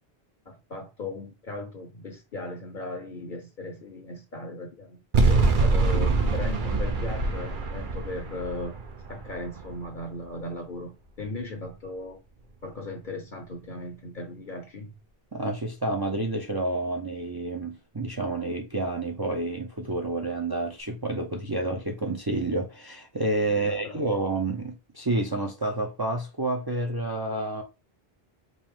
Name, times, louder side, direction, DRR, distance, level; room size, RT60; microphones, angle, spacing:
voice 1, 0.5-8.8 9.1-12.2 12.6-14.9 23.5-24.0, left 2 dB, 55° left, 0.9 m, -37 dB
sound 1, 5.1-10.3, right 3 dB, 55° right, 0.9 m, -25 dB
voice 2, 15.3-27.6, right 2 dB, 25° right, 0.6 m, -29 dB
5.3 x 2.6 x 3.6 m
omnidirectional pair, 1.0 m